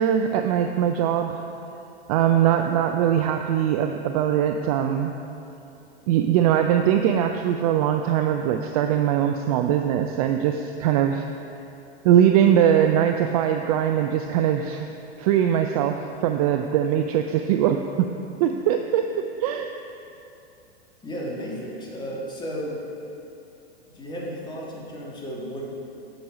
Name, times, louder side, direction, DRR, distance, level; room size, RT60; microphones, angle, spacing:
voice 1, 0.0-1.5 2.1-5.1 6.1-11.2 12.0-14.9 15.2-18.1 18.4-19.7, right 10 dB, 35° right, 5 dB, 0.4 m, -21 dB
voice 2, 21.0-22.8 23.9-26.0, equal, 15° left, -3 dB, 1.7 m, -33 dB
7.9 x 7.0 x 5.0 m, 2.7 s
hypercardioid pair, 105°, 32 cm